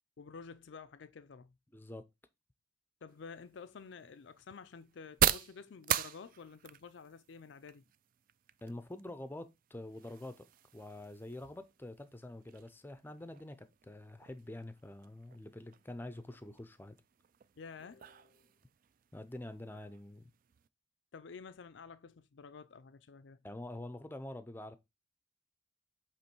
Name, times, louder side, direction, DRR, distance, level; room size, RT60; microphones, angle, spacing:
voice 1, 0.2-1.5 3.0-7.8 17.6-18.4 21.1-23.4, left 5 dB, 65° left, 0.4 m, -51 dB
voice 2, 1.7-2.0 8.6-17.0 19.1-20.2 23.4-24.8, left 1 dB, 10° left, 0.5 m, -46 dB
sound 1, 3.1-20.7, right 10 dB, 45° right, 0.3 m, -41 dB
8.2 x 3.1 x 4.5 m
head